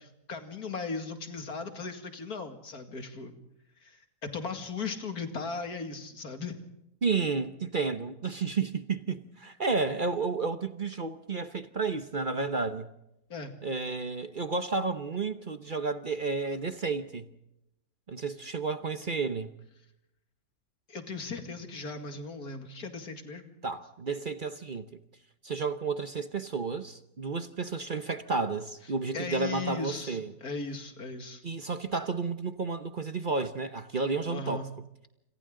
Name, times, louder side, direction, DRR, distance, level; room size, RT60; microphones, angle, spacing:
voice 1, 0.0-3.3 3.8-6.6 13.3-13.5 20.9-23.5 29.1-31.4 34.3-34.7, left 4 dB, 80° left, 2.7 m, -37 dB
voice 2, 7.0-12.9 13.6-17.3 18.1-19.5 23.6-24.9 25.4-30.3 31.4-34.7, right 4 dB, 40° right, 0.9 m, -31 dB
28.0 x 26.5 x 3.8 m
omnidirectional pair, 1.6 m